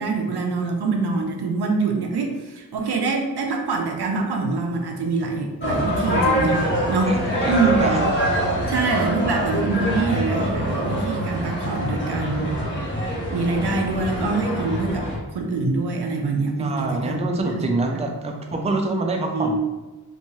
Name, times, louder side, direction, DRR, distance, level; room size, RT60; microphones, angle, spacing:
voice 1, 0.0-7.2 7.5-8.0 8.7-12.5 13.3-17.5 19.3-19.6, right 3 dB, 90° right, 2 dB, 0.5 m, -24 dB
sound 1, 5.6-15.2, equal, 30° left, 0.9 m, -24 dB
voice 2, 7.4-8.1 16.6-19.6, right 2 dB, 20° right, 2 dB, 0.4 m, -26 dB
2.9 x 2.2 x 2.7 m, 1.1 s
wide cardioid pair, 55°, 38 cm